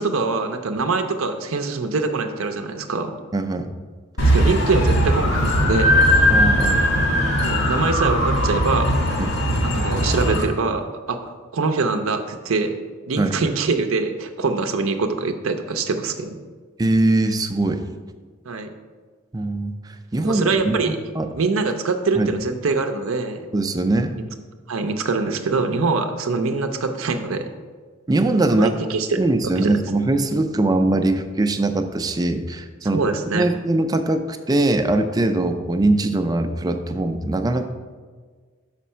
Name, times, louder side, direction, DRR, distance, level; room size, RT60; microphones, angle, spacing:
voice 1, 0.0-3.1 4.2-6.0 7.4-9.0 9.6-12.8 13.1-16.3 18.5-18.7 20.2-21.0 21.3-23.5 24.7-27.5 28.5-29.2 29.6-29.7 32.9-33.4, right 4 dB, 80° right, 6 dB, 0.6 m, -24 dB
voice 2, 3.3-3.7 6.3-6.9 9.2-9.3 13.2-13.3 16.8-17.8 19.3-21.3 22.2-22.3 23.5-24.1 28.1-28.8 29.2-33.0 33.3-37.7, right 2 dB, 20° right, 7 dB, 0.4 m, -21 dB
sound 1, 4.2-10.4, equal, 75° left, 1.6 m, -19 dB
6.3 x 5.1 x 5.5 m, 1.5 s
head